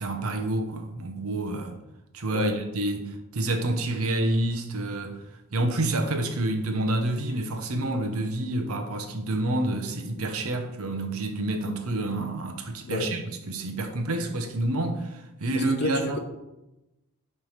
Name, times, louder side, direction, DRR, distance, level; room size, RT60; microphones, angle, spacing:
voice 1, 0.0-1.7 2.1-5.2 5.5-16.2, right 2 dB, 80° right, 0.9 m, -28 dB
voice 2, 15.5-16.2, left 3 dB, 50° left, 0.8 m, -30 dB
7.4 x 3.4 x 5.0 m
head